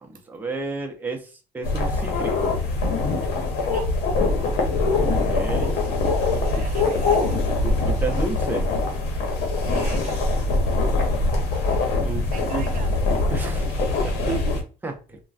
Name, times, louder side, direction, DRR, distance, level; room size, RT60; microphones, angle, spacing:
voice 1, 0.0-2.5 5.1-5.8 7.6-8.7 12.0-12.7 13.3-14.1 14.8-15.2, right 3 dB, 10° right, 0.6 m, -32 dB
sound 1, 1.6-14.6, left 3 dB, 75° left, 0.9 m, -23 dB
voice 2, 6.4-7.5 9.7-10.3 12.3-13.0 14.3-14.7, right 8 dB, 55° right, 0.6 m, -37 dB
3.0 x 2.2 x 2.7 m
cardioid pair, 110°, 17 cm